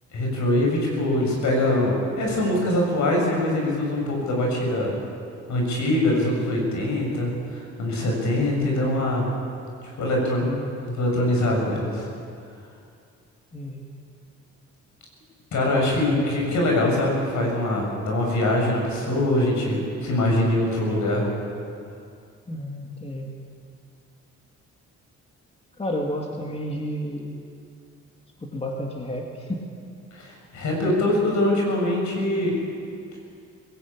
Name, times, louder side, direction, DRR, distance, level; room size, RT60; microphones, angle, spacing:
voice 1, 0.1-4.9 5.5-9.3 10.0-10.5 10.9-12.1 15.5-21.3 30.1-32.5, left 1 dB, 70° left, -1 dB, 7.2 m, -23 dB
voice 2, 10.4-10.7 13.5-13.9 22.5-23.4 25.8-27.4 28.4-29.7, equal, 20° left, 0 dB, 2.5 m, -31 dB
20.0 x 17.5 x 8.8 m, 2.4 s
cardioid pair, 90°, 30 cm